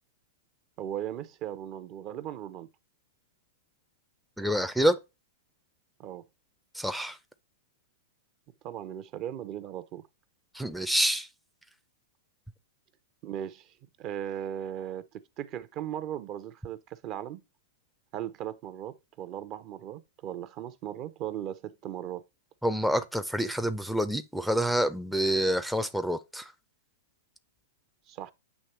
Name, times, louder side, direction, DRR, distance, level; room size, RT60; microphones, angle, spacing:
voice 1, 0.8-2.7 6.0-6.2 8.6-10.0 13.2-15.0 15.4-17.4 18.1-22.2 28.1-28.3, right 11 dB, 40° right, 0.7 m, -37 dB
voice 2, 4.4-5.0 6.7-7.2 10.5-11.3 22.6-26.5, right 1 dB, ahead, 0.5 m, -27 dB
8.4 x 3.0 x 4.3 m
hypercardioid pair, 120°, 0 cm